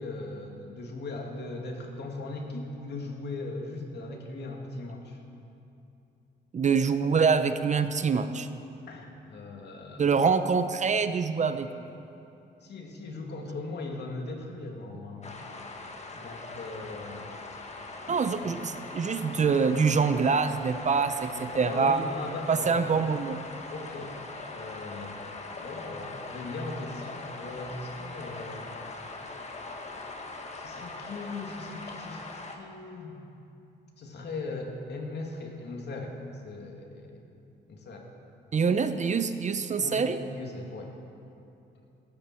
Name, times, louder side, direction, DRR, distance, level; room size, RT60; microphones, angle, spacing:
voice 1, 0.0-5.2 8.9-10.1 12.6-15.3 16.1-17.3 21.6-23.0 23.7-24.2 24.5-25.2 25.5-28.8 29.4-29.7 30.5-33.1 34.0-36.2 36.4-37.2 37.7-38.1 39.8-40.0 40.3-41.0, left 2 dB, 60° left, 1 dB, 2.4 m, -39 dB
voice 2, 6.5-8.5 10.0-11.7 18.1-22.0 22.5-23.4 38.5-40.2, right 5 dB, 35° right, 10 dB, 0.7 m, -25 dB
sound 1, 15.2-32.6, left 3 dB, 35° left, 1.7 m, -41 dB
17.0 x 14.0 x 4.5 m, 2.8 s
cardioid pair, 90°, 20 cm